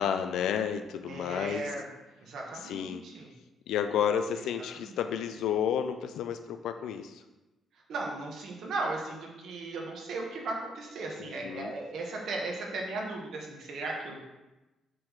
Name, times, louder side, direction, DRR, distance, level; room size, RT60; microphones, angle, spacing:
voice 1, 0.0-1.7 2.6-3.0 3.7-7.2 11.2-11.7, left 8 dB, 80° left, 8 dB, 0.5 m, -31 dB
voice 2, 1.0-1.9 2.2-3.3 4.7-4.9 7.7-14.2, right 2 dB, 60° right, -1 dB, 1.6 m, -36 dB
7.5 x 3.8 x 6.3 m, 1.0 s
cardioid pair, 170°, 0 cm